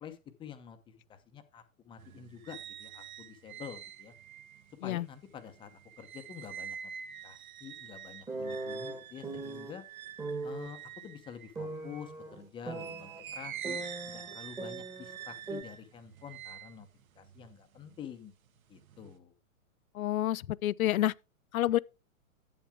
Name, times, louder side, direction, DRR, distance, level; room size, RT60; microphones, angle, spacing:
voice 1, 0.0-4.1 4.8-6.8 7.2-9.9 10.4-13.8 14.1-16.9 17.2-18.3 18.7-19.3, left 8 dB, 10° left, 0.8 m, -48 dB
sound 1, 2.0-12.1 12.7-18.2 18.6-19.2, right 8 dB, 75° right, 1.4 m, -46 dB
sound 2, 8.3-9.7 10.2-10.7 11.6-13.2 13.6-15.2 15.5-15.6, right 3 dB, 10° right, 1.3 m, -39 dB
voice 2, 19.9-21.1 21.5-21.8, left 13 dB, 75° left, 0.6 m, -28 dB
10.5 x 8.2 x 3.5 m
hypercardioid pair, 150°, 42 cm